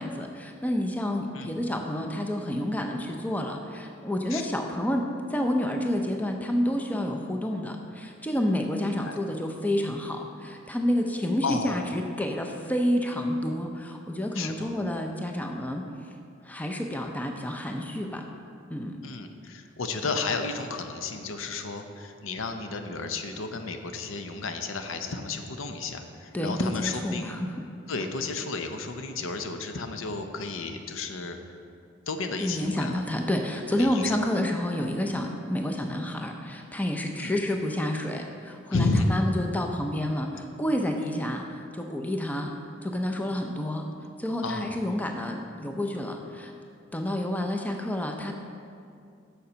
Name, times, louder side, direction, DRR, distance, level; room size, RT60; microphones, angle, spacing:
voice 1, 0.0-15.8 16.4-18.2 18.7-19.0 26.3-27.7 32.4-41.4 41.7-42.5 42.8-43.9 44.2-46.5 46.9-48.3, left 1 dB, 10° left, 3 dB, 0.4 m, -29 dB
voice 2, 9.0-9.4 11.4-11.8 14.3-14.7 19.0-27.3 27.9-31.4 32.1-33.0 33.8-34.2 37.2-37.4 38.7-39.2 44.4-44.8, left 3 dB, 85° left, 6 dB, 0.6 m, -32 dB
7.0 x 6.6 x 5.1 m, 2.4 s
head